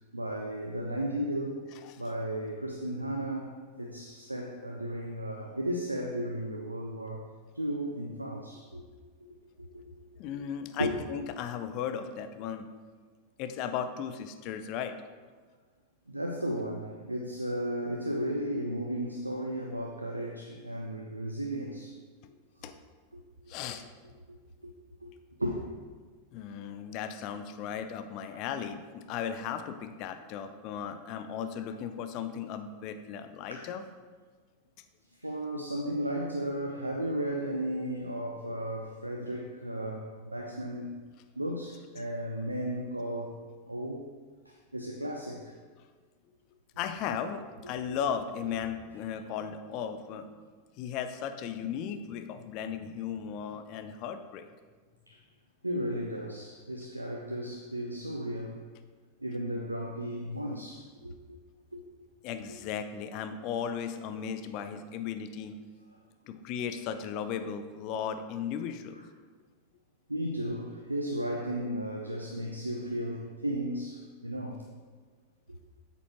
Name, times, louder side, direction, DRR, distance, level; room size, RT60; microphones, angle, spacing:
voice 1, 0.1-1.6 2.0-7.2 7.5-8.8 9.6-10.0 10.8-11.0 16.1-22.0 24.3-24.4 24.6-24.7 25.0-25.1 25.4-25.7 33.5-33.6 35.1-41.0 41.4-43.4 43.7-44.1 44.5-45.5 55.1-55.2 55.6-58.6 59.2-61.4 61.7-61.8 70.1-74.7, equal, 85° right, 2 dB, 0.5 m, -34 dB
voice 2, 10.2-12.7 13.4-14.9 22.6-22.8 23.5-23.9 26.3-33.8 46.8-50.3 50.8-54.5 62.2-65.5 66.3-69.0, left 8 dB, 40° left, 9 dB, 0.5 m, -36 dB
8.5 x 7.0 x 2.9 m, 1.5 s
figure-of-eight pair, 90°, 0 cm